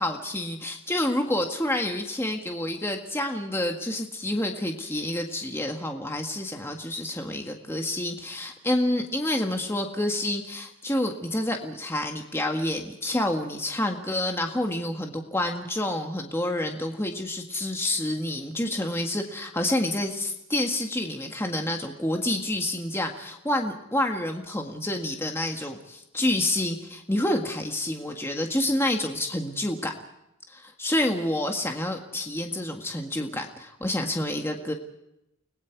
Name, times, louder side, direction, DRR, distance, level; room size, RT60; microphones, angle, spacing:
voice 1, 0.0-29.9 30.5-34.7, left 1 dB, 10° left, 3 dB, 1.7 m, -28 dB
30.0 x 20.0 x 4.8 m, 0.86 s
head